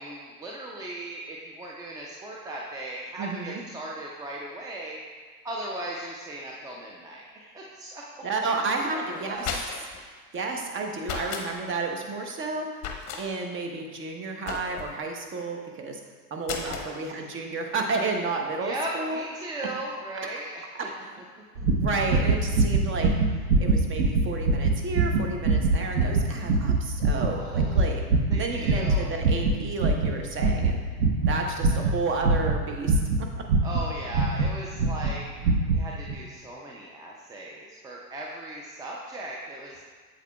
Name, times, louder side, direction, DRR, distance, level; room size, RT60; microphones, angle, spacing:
voice 1, 0.0-5.0 5.4-8.2 8.5-8.6 8.9-9.5 16.5-17.0 18.6-20.9 27.3-27.8 28.3-29.1 31.4-32.0 33.6-35.2 35.6-39.8, right 1 dB, 10° right, -3 dB, 0.4 m, -37 dB
voice 2, 3.2-3.6 8.2-9.5 10.0-12.7 13.2-16.0 16.3-19.2 20.7-20.9 21.8-23.1 23.6-28.0 28.4-30.8 31.3-33.3, right 3 dB, 25° right, 2 dB, 1.0 m, -31 dB
sound 1, 9.2-10.0 11.0-11.5 12.8-13.2 14.5-15.0 16.4-16.9, left 6 dB, 35° left, 1.0 m, -34 dB
sound 2, 21.6-34.5 34.8-35.1 35.4-35.8 36.1-36.2, right 3 dB, 65° right, 1.0 m, -23 dB
8.2 x 7.5 x 2.3 m, 1.5 s
figure-of-eight pair, 90°, 46 cm